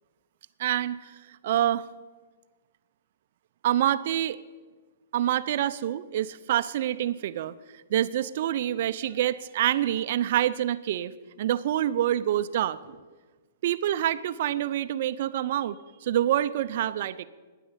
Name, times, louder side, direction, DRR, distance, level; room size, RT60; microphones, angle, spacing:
voice 1, 0.6-1.8 3.6-4.4 5.1-7.5 7.9-11.1 11.4-13.0 13.6-17.2, right 12 dB, 55° right, 14 dB, 0.6 m, -26 dB
13.0 x 10.0 x 8.0 m, 1.4 s
hypercardioid pair, 150°, 0 cm